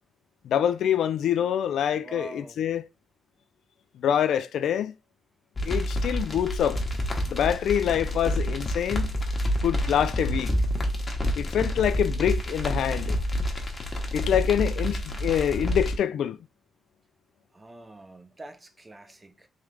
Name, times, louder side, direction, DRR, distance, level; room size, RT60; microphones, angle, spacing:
voice 1, 0.4-2.8 4.0-4.9 5.6-6.8 7.3-9.1 9.6-10.5 11.4-13.2 14.1-16.4, left 9 dB, 85° left, 0.4 m, -25 dB
voice 2, 2.0-2.6 17.5-19.5, right 2 dB, 20° right, 0.6 m, -45 dB
sound 1, 5.6-16.0, equal, 30° left, 1.0 m, -28 dB
3.7 x 3.3 x 3.4 m
cardioid pair, 125°, 0 cm